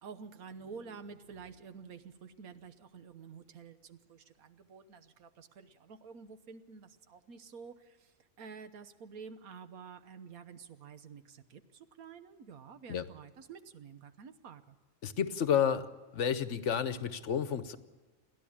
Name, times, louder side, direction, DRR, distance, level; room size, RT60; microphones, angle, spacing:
voice 1, 0.0-14.8, right 5 dB, 85° right, 10 dB, 1.5 m, -50 dB
voice 2, 15.0-15.9 16.1-17.8, left 8 dB, 60° left, 13 dB, 1.1 m, -30 dB
29.0 x 11.0 x 8.6 m, 1.3 s
omnidirectional pair, 1.5 m